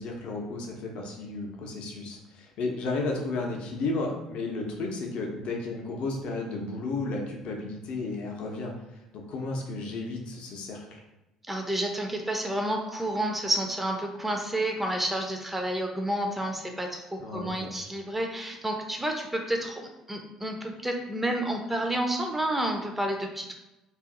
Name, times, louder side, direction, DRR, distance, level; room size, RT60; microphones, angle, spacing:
voice 1, 0.0-11.0 17.2-17.7, left 3 dB, 50° left, 0 dB, 0.6 m, -33 dB
voice 2, 11.5-23.5, right 1 dB, 5° right, 3 dB, 0.4 m, -30 dB
2.5 x 2.4 x 3.6 m, 0.99 s
figure-of-eight pair, 55°, 2 cm